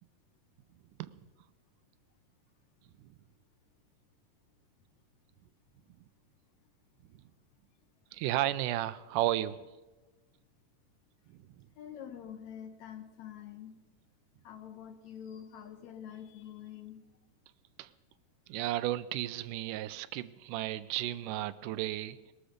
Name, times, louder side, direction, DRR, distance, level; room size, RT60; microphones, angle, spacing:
voice 1, 8.1-9.6 11.3-11.4 17.8-17.9 18.5-22.3, right 14 dB, 90° right, 14 dB, 2.2 m, -33 dB
voice 2, 11.8-13.8 14.4-17.0, left 9 dB, 70° left, 8 dB, 2.2 m, -46 dB
19.5 x 13.0 x 5.1 m, 1.2 s
omnidirectional pair, 3.6 m